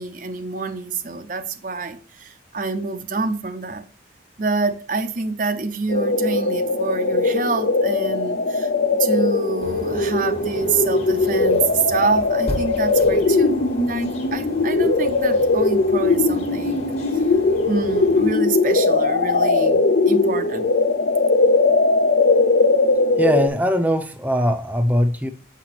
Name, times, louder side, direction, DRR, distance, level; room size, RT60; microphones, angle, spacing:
voice 1, 0.0-3.8 4.4-8.7 9.0-16.9 17.1-17.2 17.6-20.7, right 4 dB, 45° right, 0.6 m, -26 dB
sound 1, 5.9-23.5, left 3 dB, 65° left, 0.7 m, -19 dB
sound 2, 9.6-18.3, equal, 35° left, 1.4 m, -37 dB
voice 2, 23.2-25.3, equal, 10° right, 0.7 m, -20 dB
7.4 x 5.9 x 3.0 m
head